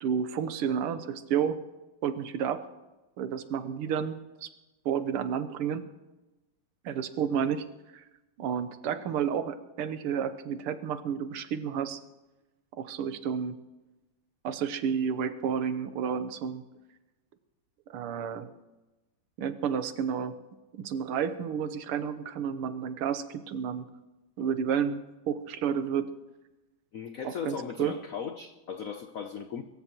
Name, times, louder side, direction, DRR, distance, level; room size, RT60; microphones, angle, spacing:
voice 1, 0.0-1.6 2.0-2.7 3.2-4.5 4.9-5.9 6.8-7.7 7.9-8.0 8.4-12.0 12.8-13.6 14.4-16.6 17.9-18.5 19.4-20.4 20.7-23.9 24.4-26.1 27.2-28.0, right 7 dB, 90° right, 11 dB, 1.8 m, -31 dB
voice 2, 26.9-29.6, left 7 dB, 75° left, 8 dB, 0.7 m, -37 dB
23.0 x 14.5 x 3.0 m, 1.1 s
omnidirectional pair, 2.4 m